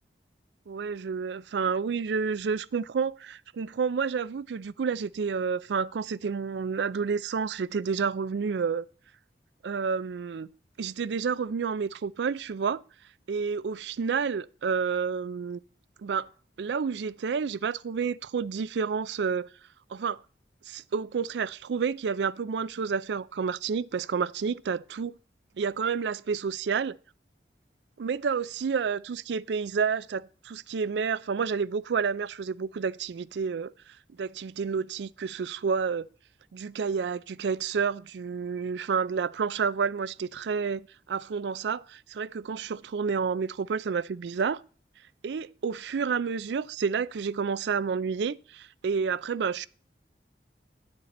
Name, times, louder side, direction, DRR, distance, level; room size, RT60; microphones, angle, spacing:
voice 1, 0.7-8.8 9.6-10.5 10.8-12.8 13.3-15.6 16.0-16.3 16.6-19.5 19.9-20.2 20.7-25.1 25.6-27.0 28.0-33.7 34.2-36.1 36.5-44.6 45.2-49.7, right 6 dB, 80° right, 0.4 m, -30 dB
10.0 x 6.7 x 4.2 m
head